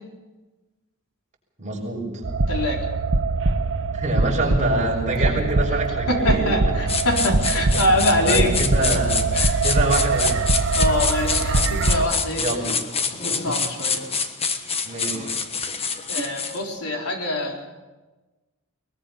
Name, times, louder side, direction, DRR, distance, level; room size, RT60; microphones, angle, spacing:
voice 1, 1.6-2.1 3.9-6.9 7.7-7.8 8.2-9.3 9.6-10.4 12.4-12.7 14.8-15.3, right 2 dB, 35° right, -2 dB, 6.7 m, -25 dB
sound 1, 2.2-12.0, right 3 dB, 60° right, 1.1 m, -23 dB
voice 2, 2.5-2.8 5.3-5.4 6.1-8.5 8.9-9.0 9.3-9.6 10.7-12.8 13.2-14.0 16.1-17.6, left 1 dB, 80° left, 0 dB, 4.2 m, -24 dB
sound 2, 6.9-16.6, left 5 dB, 30° left, 1.3 m, -26 dB
22.0 x 21.5 x 5.7 m, 1.2 s
head